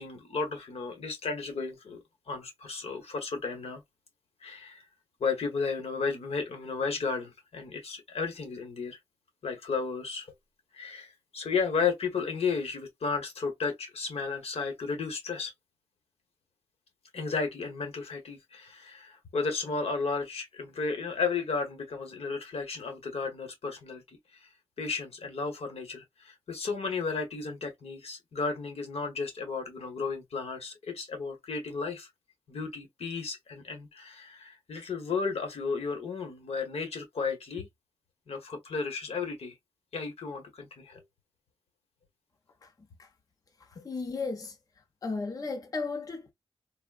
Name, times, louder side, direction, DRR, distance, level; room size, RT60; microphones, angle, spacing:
voice 1, 0.0-3.8 4.4-4.8 5.2-9.0 9.4-10.3 10.7-15.5 17.1-24.0 24.3-24.5 24.8-32.1 32.5-37.7 38.3-39.5 39.9-41.0 43.7-43.9, left 4 dB, 75° left, 1.0 m, -33 dB
voice 2, 43.6-44.6 45.0-46.3, left 4 dB, 35° left, 0.5 m, -35 dB
3.5 x 2.0 x 2.3 m
wide cardioid pair, 130°, 10 cm